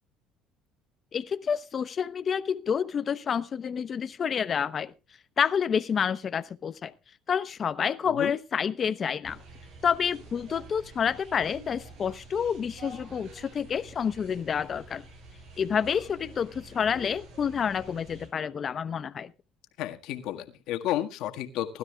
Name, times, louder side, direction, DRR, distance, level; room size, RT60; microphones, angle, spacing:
voice 1, 1.1-4.9 5.4-6.9 7.3-9.4 9.8-15.0 15.6-19.3, left 7 dB, 40° left, 0.9 m, -29 dB
sound 1, 9.2-18.3, right 3 dB, 75° right, 7.5 m, -48 dB
voice 2, 19.8-21.8, left 12 dB, 75° left, 1.7 m, -32 dB
20.0 x 12.5 x 2.4 m
supercardioid pair, 90°, 0 cm